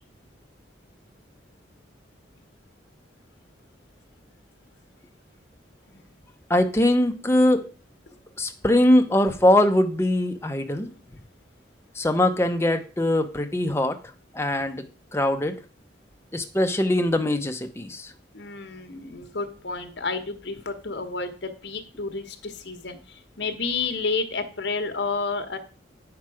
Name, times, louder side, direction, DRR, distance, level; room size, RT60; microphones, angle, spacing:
voice 1, 6.5-7.7 8.4-10.9 12.0-14.0 14.3-14.8 15.1-15.6 16.3-18.1, left 1 dB, 15° left, 6 dB, 0.7 m, -22 dB
voice 2, 18.3-25.6, left 4 dB, 65° left, 8 dB, 1.2 m, -30 dB
8.7 x 6.0 x 4.8 m, 0.38 s
head